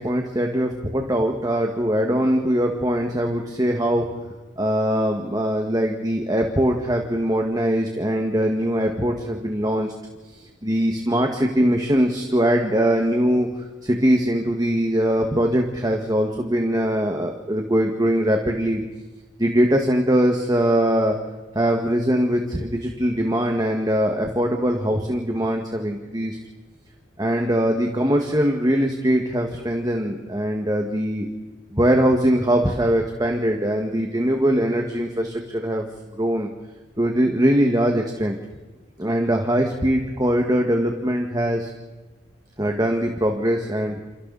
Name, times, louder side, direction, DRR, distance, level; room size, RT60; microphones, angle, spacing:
voice 1, 0.0-4.1 4.6-9.9 10.3-13.5 13.8-18.8 19.4-21.2 21.6-26.4 27.2-31.3 31.7-35.9 36.1-36.5 37.0-38.4 39.0-41.7 42.6-44.0, equal, 20° right, 2 dB, 1.9 m, -21 dB
29.5 x 29.0 x 4.2 m, 1.2 s
head